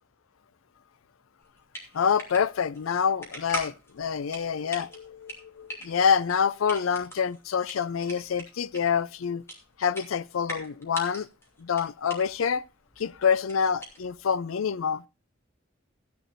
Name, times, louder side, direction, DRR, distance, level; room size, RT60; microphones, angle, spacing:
sound 1, 1.4-14.4, equal, 15° left, 2.7 m, -42 dB
voice 1, 1.9-9.4 9.8-11.3 11.6-12.6 13.0-15.0, left 7 dB, 85° left, 0.4 m, -27 dB
15.5 x 10.0 x 2.6 m
head